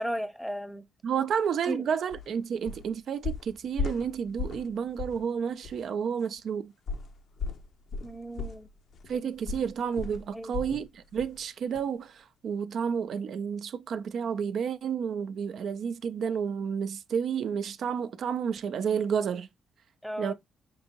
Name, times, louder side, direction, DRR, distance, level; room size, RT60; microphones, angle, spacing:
voice 1, 0.0-0.8 1.6-1.8 8.0-8.7 10.3-10.5 20.0-20.3, equal, ahead, 0.7 m, -34 dB
voice 2, 1.0-6.7 9.1-19.5 20.2-20.3, right 7 dB, 60° right, 0.4 m, -31 dB
sound 1, 2.1-2.3 2.7-2.9 3.2-4.7 5.0-5.2 5.6-5.8 6.9-10.9 11.2-11.4 11.8-11.9, left 4 dB, 60° left, 0.5 m, -36 dB
5.2 x 2.7 x 2.9 m
cardioid pair, 90°, 0 cm